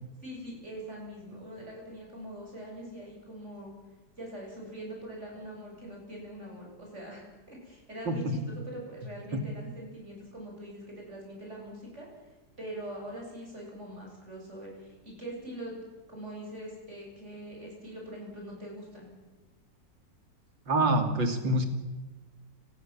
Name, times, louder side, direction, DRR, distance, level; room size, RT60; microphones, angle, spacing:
voice 1, 0.2-3.7 4.2-12.1 12.6-15.8 16.1-19.1, right 1 dB, 40° right, -2 dB, 8.3 m, -43 dB
voice 2, 20.7-21.7, right 1 dB, 90° right, 6 dB, 3.7 m, -26 dB
30.0 x 19.0 x 7.5 m, 1.2 s
omnidirectional pair, 2.0 m